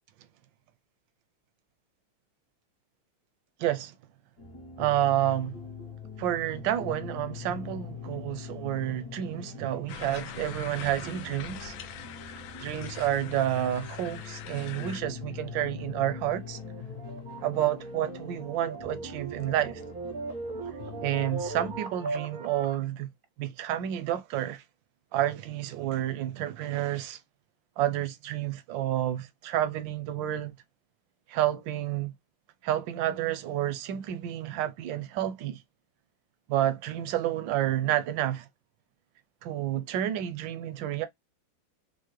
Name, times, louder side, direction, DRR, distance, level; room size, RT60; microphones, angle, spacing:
voice 1, 3.6-3.9 4.8-5.6 6.2-11.8 12.6-16.6 17.4-19.8 21.0-23.1 23.4-24.6 25.1-27.2 27.8-30.6 31.3-32.1 32.6-35.6 36.5-38.5 39.4-41.1, right 12 dB, 80° right, 1.3 m, -30 dB
sound 1, 4.4-21.8, left 6 dB, 55° left, 1.4 m, -43 dB
sound 2, 9.9-15.0, left 10 dB, 85° left, 1.3 m, -43 dB
sound 3, 15.5-22.8, right 3 dB, 50° right, 0.6 m, -39 dB
4.7 x 2.1 x 3.0 m
omnidirectional pair, 2.1 m